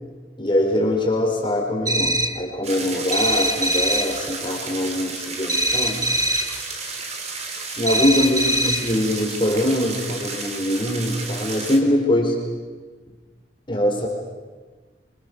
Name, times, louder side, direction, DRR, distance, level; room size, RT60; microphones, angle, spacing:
voice 1, 0.4-6.0 7.8-12.3 13.7-14.1, left 1 dB, 30° left, 0 dB, 4.7 m, -22 dB
sound 1, 1.8-2.5 3.1-4.2 5.5-6.6 7.9-9.0, right 1 dB, 20° right, 1.2 m, -23 dB
sound 2, 2.6-11.8, right 4 dB, 40° right, 3.6 m, -32 dB
28.5 x 25.5 x 7.0 m, 1.4 s
head